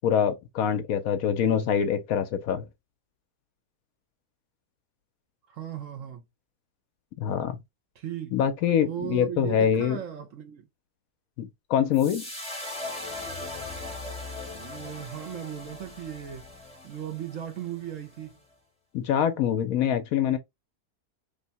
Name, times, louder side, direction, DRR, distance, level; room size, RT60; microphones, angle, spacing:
voice 1, 0.0-2.7 7.2-7.6 8.3-10.0 11.4-12.2 18.9-20.4, left 8 dB, 70° left, 0.9 m, -25 dB
voice 2, 5.5-6.2 7.9-8.5 8.8-10.7 14.5-16.5 16.8-18.4, right 10 dB, 60° right, 1.1 m, -37 dB
sound 1, 11.9-18.3, left 2 dB, 5° left, 1.4 m, -39 dB
3.4 x 2.7 x 4.1 m
omnidirectional pair, 1.7 m